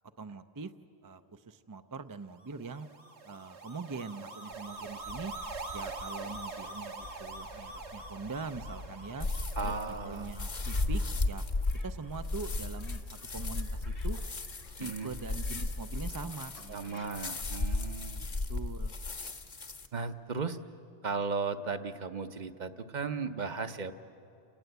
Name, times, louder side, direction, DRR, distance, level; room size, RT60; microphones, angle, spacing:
voice 1, 0.2-0.7 1.0-2.9 3.2-5.3 5.7-9.3 9.6-9.8 10.0-11.5 11.8-14.2 14.8-17.1 18.5-19.0, right 4 dB, 30° right, 8 dB, 0.4 m, -42 dB
sound 1, 2.5-11.8, right 3 dB, 85° right, 1.9 m, -44 dB
sound 2, 4.5-17.6, left 2 dB, 80° left, 2.0 m, -51 dB
sound 3, 9.2-19.9, left 2 dB, 45° left, 1.1 m, -35 dB
voice 2, 9.6-10.3 14.8-15.1 16.7-18.3 19.9-20.6 21.0-23.9, right 4 dB, 45° right, 9 dB, 0.9 m, -36 dB
29.0 x 19.0 x 8.1 m, 2.7 s
omnidirectional pair, 1.1 m